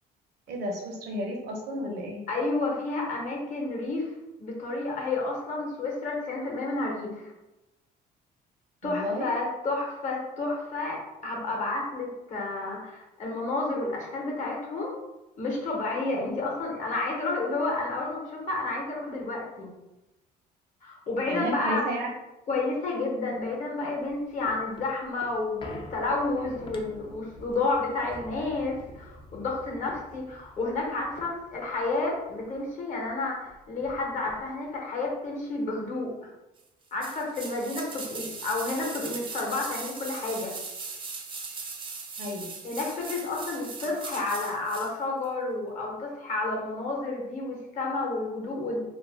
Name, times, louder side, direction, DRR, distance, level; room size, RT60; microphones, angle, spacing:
voice 1, 0.5-2.2 8.8-9.3 16.1-16.3 21.3-22.1 42.2-42.5, equal, 70° right, 0 dB, 0.8 m, -32 dB
voice 2, 2.3-4.1 4.4-7.3 8.8-15.0 15.4-19.7 20.8-21.8 22.5-36.1 36.9-40.5 42.6-48.9, left 3 dB, 50° left, -1 dB, 0.9 m, -30 dB
sound 1, 24.0-32.7 33.0-33.1 33.4-34.8 35.3-35.4, left 1 dB, 30° left, 0.4 m, -47 dB
sound 2, 37.0-44.9 45.2-45.3, right 4 dB, 30° right, 0.5 m, -39 dB
2.4 x 2.1 x 3.2 m, 0.98 s
cardioid pair, 110°, 17 cm